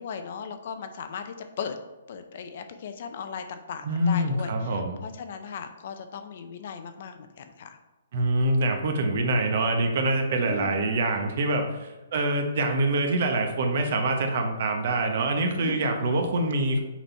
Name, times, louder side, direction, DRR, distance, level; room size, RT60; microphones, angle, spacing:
voice 1, 0.0-1.8 2.1-7.8 10.4-10.8 15.6-15.8, left 6 dB, 50° left, 7 dB, 0.7 m, -37 dB
voice 2, 3.8-5.0 8.1-16.8, right 2 dB, 55° right, 4 dB, 1.0 m, -25 dB
6.2 x 4.1 x 4.4 m, 1.1 s
hypercardioid pair, 155°, 0 cm